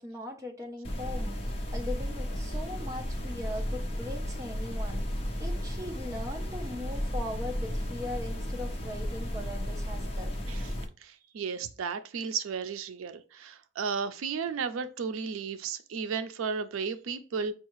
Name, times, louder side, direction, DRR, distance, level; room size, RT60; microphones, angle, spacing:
voice 1, 0.0-10.3, left 1 dB, 15° right, 0.6 m, -40 dB
sound 1, 0.8-10.9, equal, 30° left, 0.7 m, -34 dB
voice 2, 11.0-17.5, right 5 dB, 85° right, 0.4 m, -34 dB
5.4 x 2.4 x 3.0 m
head